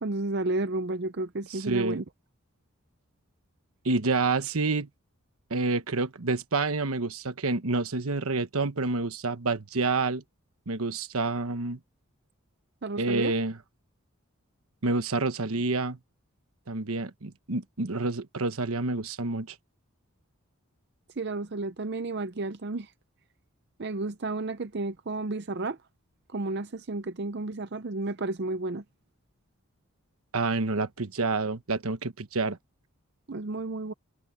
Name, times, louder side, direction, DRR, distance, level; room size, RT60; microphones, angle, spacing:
voice 1, 0.0-2.0 12.8-13.3 21.2-22.9 23.8-25.8 26.3-28.8 33.3-33.9, right 2 dB, 50° right, 0.6 m, -32 dB
voice 2, 1.5-2.0 3.8-4.9 5.5-10.2 10.7-11.8 13.0-13.6 14.8-16.0 16.7-19.5 30.3-32.6, right 3 dB, 80° right, 1.1 m, -28 dB
head